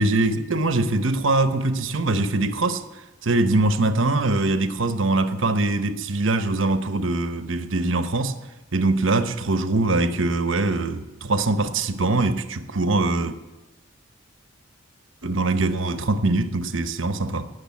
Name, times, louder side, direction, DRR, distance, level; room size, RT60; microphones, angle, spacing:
voice 1, 0.0-2.8 3.2-8.4 8.7-13.3 15.2-17.5, right 2 dB, 75° right, 1.0 m, -22 dB
18.0 x 6.5 x 8.5 m
head